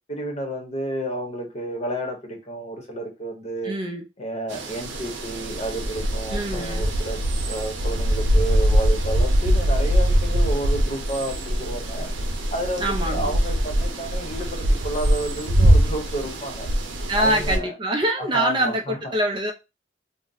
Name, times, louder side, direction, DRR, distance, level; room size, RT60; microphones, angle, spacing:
voice 1, 0.1-3.7 4.2-7.2 7.5-12.1 12.5-16.7 17.2-17.7 18.3-19.0, right 1 dB, 35° left, 0.8 m, -31 dB
voice 2, 3.6-4.0 6.3-6.8 12.8-13.3 17.1-19.5, right 1 dB, 25° right, 0.4 m, -24 dB
sound 1, 4.5-17.6, equal, 85° right, 0.6 m, -22 dB
2.6 x 2.0 x 3.8 m
head